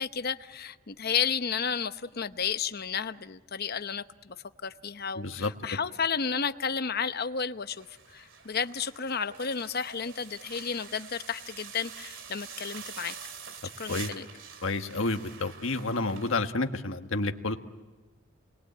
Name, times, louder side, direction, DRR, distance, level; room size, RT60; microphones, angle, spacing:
voice 1, 0.0-4.4 4.6-7.9 8.1-13.1 13.8-14.3, left 6 dB, 50° left, 0.9 m, -32 dB
voice 2, 5.2-5.5 13.9-14.1 14.6-17.6, left 2 dB, 70° left, 1.5 m, -30 dB
sound 1, 7.7-16.3, right 6 dB, 65° right, 2.5 m, -46 dB
28.5 x 22.0 x 8.7 m
head